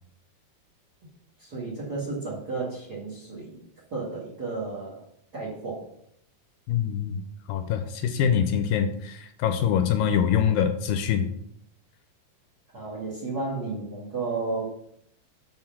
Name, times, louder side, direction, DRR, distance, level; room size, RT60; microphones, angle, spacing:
voice 1, 1.4-3.6 3.9-5.0 5.3-5.8 12.7-14.6, right 3 dB, 35° right, -3 dB, 1.9 m, -32 dB
voice 2, 6.7-7.2 7.5-11.3, left 8 dB, 80° left, 8 dB, 2.2 m, -24 dB
7.7 x 4.7 x 5.8 m, 0.72 s
omnidirectional pair, 4.3 m